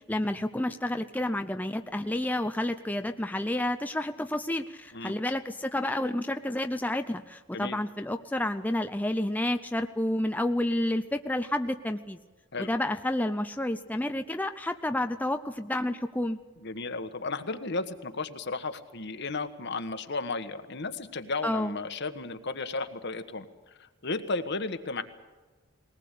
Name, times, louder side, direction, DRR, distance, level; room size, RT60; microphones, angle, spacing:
voice 1, 0.1-12.2 12.6-16.4 21.4-21.7, left 1 dB, 10° left, 7 dB, 0.6 m, -30 dB
voice 2, 16.6-25.0, left 3 dB, 60° left, 9 dB, 1.5 m, -34 dB
20.5 x 19.0 x 8.4 m, 1.3 s
head